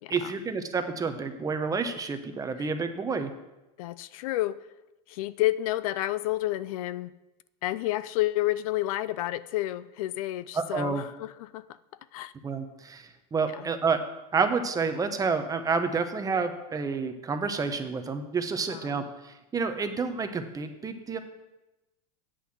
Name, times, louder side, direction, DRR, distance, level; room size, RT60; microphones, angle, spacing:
voice 1, 0.1-3.3 10.5-11.0 12.4-14.0 14.3-21.2, right 5 dB, 20° right, 8 dB, 1.0 m, -29 dB
voice 2, 3.8-4.6 5.1-7.1 7.6-11.6 12.1-12.3 13.4-13.7 18.7-19.0, left 16 dB, 65° left, 16 dB, 0.4 m, -30 dB
8.3 x 5.7 x 7.7 m, 1.0 s
hypercardioid pair, 110°, 19 cm